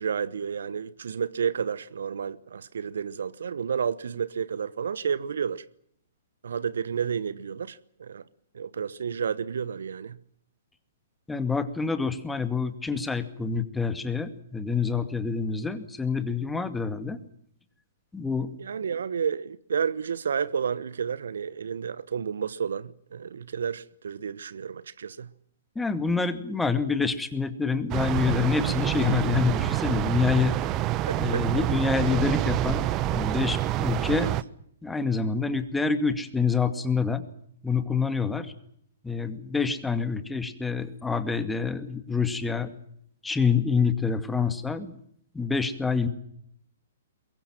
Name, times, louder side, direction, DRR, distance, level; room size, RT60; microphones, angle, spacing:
voice 1, 0.0-5.6 6.4-8.2 8.5-10.2 18.6-25.3 31.1-31.4 34.2-34.3, right 7 dB, 70° right, 1.0 m, -31 dB
voice 2, 11.3-17.2 18.1-18.5 25.8-30.6 31.1-34.3 34.8-37.2 37.6-38.5 39.0-42.7 43.2-44.9 45.3-46.1, left 5 dB, 5° left, 2.2 m, -27 dB
sound 1, 27.9-34.4, right 14 dB, 30° right, 0.9 m, -27 dB
23.0 x 22.5 x 7.5 m
figure-of-eight pair, 120°, 0 cm